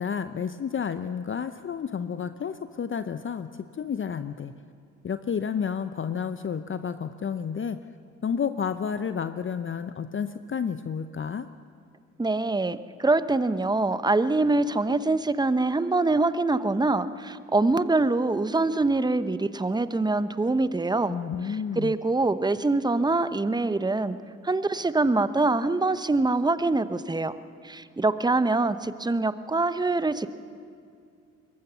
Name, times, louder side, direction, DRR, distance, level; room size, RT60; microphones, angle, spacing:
voice 1, 0.0-4.5 5.0-7.8 8.2-11.5 21.1-21.9, left 7 dB, 30° left, 11 dB, 0.8 m, -31 dB
voice 2, 12.2-21.2 21.8-24.2 24.4-27.3 27.6-30.3, right 2 dB, 10° right, 13 dB, 0.9 m, -24 dB
22.5 x 18.5 x 6.9 m, 2.3 s
hypercardioid pair, 45°, 38 cm